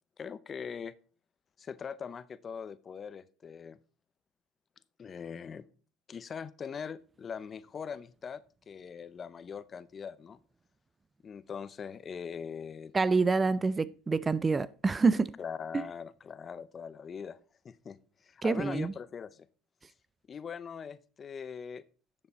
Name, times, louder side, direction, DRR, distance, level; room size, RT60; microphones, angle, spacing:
voice 1, 0.2-0.9 1.6-3.8 5.0-5.6 6.1-10.4 11.2-12.9 15.4-17.4 17.6-19.5 20.3-21.8, left 6 dB, 30° left, 0.6 m, -41 dB
voice 2, 12.9-15.3 18.4-18.9, right 4 dB, 20° right, 0.4 m, -27 dB
10.5 x 6.9 x 4.2 m
supercardioid pair, 115°, 0 cm